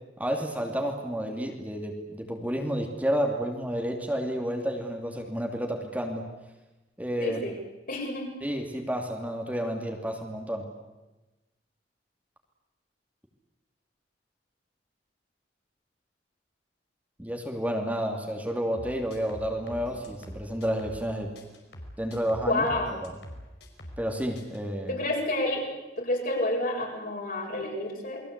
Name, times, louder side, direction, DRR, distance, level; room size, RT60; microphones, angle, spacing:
voice 1, 0.2-6.3 7.0-7.4 8.4-10.6 17.2-21.3 22.0-22.7 23.0-23.1 24.0-25.0, equal, 10° right, 2 dB, 2.8 m, -30 dB
voice 2, 7.2-7.5 7.9-8.3 22.5-22.9 24.9-25.7 26.0-28.2, left 1 dB, 55° left, 0 dB, 6.9 m, -29 dB
sound 1, 18.7-21.1 21.4-24.1 24.4-24.6, equal, 70° left, 5.0 m, -44 dB
29.0 x 22.0 x 8.3 m, 1.1 s
head